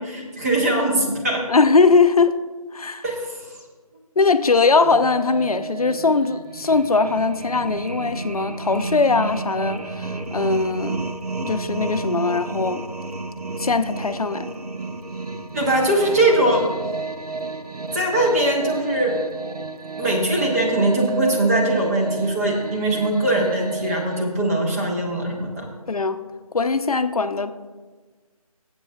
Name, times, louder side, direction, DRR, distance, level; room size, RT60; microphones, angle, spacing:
voice 1, 0.0-1.4 3.0-3.4 15.5-16.7 17.9-19.2 20.0-25.7, right 1 dB, 25° right, -2 dB, 1.5 m, -21 dB
voice 2, 1.5-2.4 2.7-3.0 4.2-11.0 11.4-12.8 13.6-14.5 25.9-26.2 26.5-27.5, left 4 dB, 70° left, 10 dB, 0.6 m, -20 dB
sound 1, 4.7-24.2, right 3 dB, 85° right, 0.8 m, -31 dB
19.0 x 8.2 x 2.4 m, 1.4 s
figure-of-eight pair, 160°, 19 cm